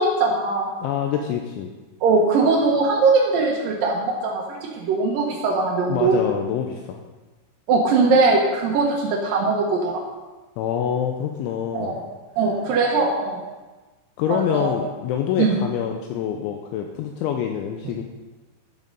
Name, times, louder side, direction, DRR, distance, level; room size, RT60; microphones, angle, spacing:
voice 1, 0.0-0.7 2.0-6.2 7.7-10.0 11.7-11.9 12.4-13.4 14.3-14.7 15.4-15.6, right 3 dB, 85° right, -1 dB, 1.9 m, -20 dB
voice 2, 0.8-1.7 5.9-7.0 10.6-12.0 12.4-12.6 14.2-18.0, left 8 dB, 80° left, 3 dB, 2.9 m, -26 dB
12.0 x 7.4 x 5.4 m, 1.2 s
omnidirectional pair, 5.9 m